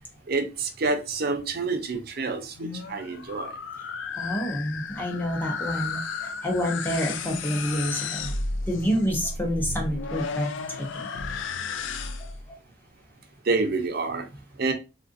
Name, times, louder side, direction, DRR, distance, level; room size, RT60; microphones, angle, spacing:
voice 1, 0.3-3.5 13.4-14.3 14.6-14.7, right 3 dB, 55° right, 6 dB, 0.6 m, -28 dB
sound 1, 2.4-12.4, left 4 dB, 80° left, 0.4 m, -33 dB
voice 2, 4.2-8.4 8.7-10.5 10.8-11.1 12.2-12.6, equal, 10° left, 1 dB, 0.8 m, -28 dB
3.7 x 2.4 x 2.5 m, 0.29 s
head